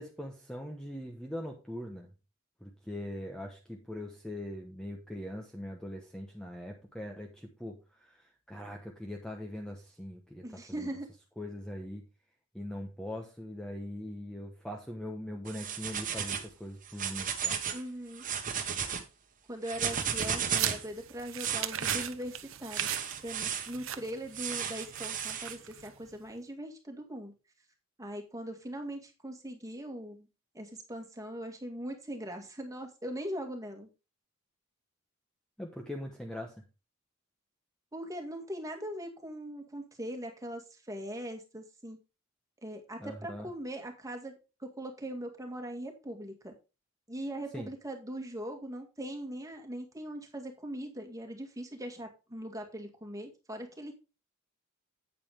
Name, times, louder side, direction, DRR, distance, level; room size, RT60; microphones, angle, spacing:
voice 1, 0.0-2.1 2.6-10.9 11.4-12.0 12.5-17.6 35.6-36.6 43.0-43.5 47.5-47.7, left 1 dB, 5° left, 1 dB, 1.1 m, -41 dB
voice 2, 10.4-11.1 17.7-18.2 19.5-22.9 23.2-27.3 28.0-30.3 30.5-33.9 37.9-42.0 42.6-44.3 44.6-46.5 47.1-53.9, right 1 dB, 15° right, 4 dB, 2.0 m, -40 dB
sound 1, 15.5-16.5 16.9-17.8 18.1-19.0 19.6-20.9 21.4-22.1 22.7-23.7 24.3-25.6, right 8 dB, 40° right, 1.4 m, -34 dB
sound 2, 19.9-26.1, right 11 dB, 65° right, 0.8 m, -39 dB
8.7 x 8.5 x 3.5 m, 0.29 s
head